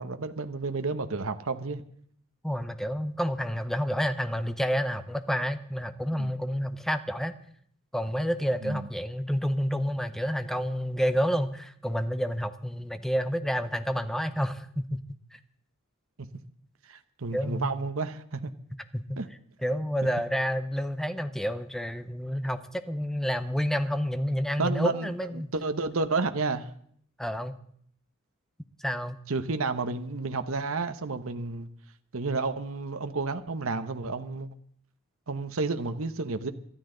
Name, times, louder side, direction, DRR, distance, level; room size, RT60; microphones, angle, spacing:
voice 1, 0.0-1.8 6.2-6.3 8.6-8.9 16.2-16.3 16.9-18.5 19.2-19.3 24.6-25.1 25.3-26.7 29.3-31.7 32.1-34.5 35.3-36.5, right 3 dB, 65° right, 1.0 m, -31 dB
voice 2, 2.4-7.3 7.9-15.0 17.3-17.7 18.9-19.2 19.6-25.5 27.2-27.6 28.8-29.2, equal, ahead, 0.7 m, -29 dB
21.5 x 13.0 x 3.9 m
head